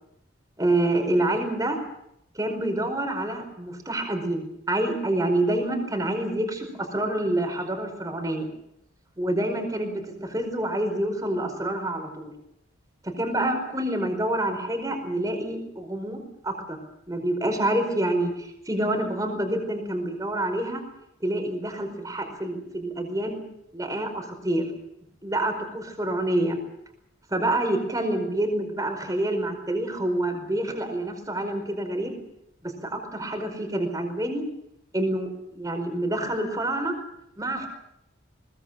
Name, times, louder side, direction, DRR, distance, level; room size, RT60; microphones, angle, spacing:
voice 1, 0.6-1.8 2.3-8.5 9.2-12.3 13.0-16.8 17.1-20.8 21.2-23.4 23.7-24.7 25.2-26.6 27.3-32.2 32.6-34.4 34.9-36.9 37.4-37.7, right 1 dB, 15° right, 5 dB, 4.9 m, -27 dB
22.0 x 20.0 x 7.8 m, 0.80 s
head